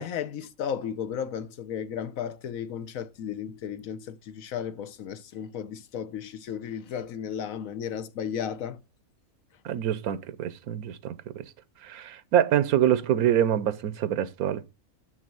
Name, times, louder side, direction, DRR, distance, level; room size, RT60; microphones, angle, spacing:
voice 1, 0.0-8.8, left 8 dB, 75° left, 1.2 m, -34 dB
voice 2, 9.6-11.4 11.8-14.6, right 10 dB, 90° right, 1.2 m, -25 dB
6.5 x 6.4 x 7.5 m
omnidirectional pair, 1.5 m